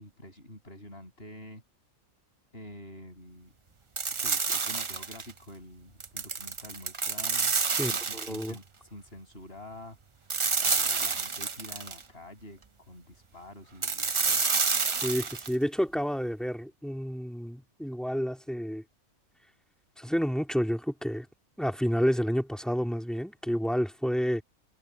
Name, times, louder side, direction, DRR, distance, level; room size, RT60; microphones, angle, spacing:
voice 1, 0.0-1.6 2.5-3.5 4.2-7.5 7.9-10.0 10.6-12.6 12.9-14.4, left 1 dB, 45° left, 8.0 m, -47 dB
sound 1, 4.0-5.3 6.0-8.5 10.3-12.0 13.8-15.5, right 5 dB, 30° right, 0.6 m, -29 dB
voice 2, 7.8-8.5 15.0-18.8 20.0-21.3 21.6-24.4, equal, ahead, 2.7 m, -30 dB
omnidirectional pair, 1.4 m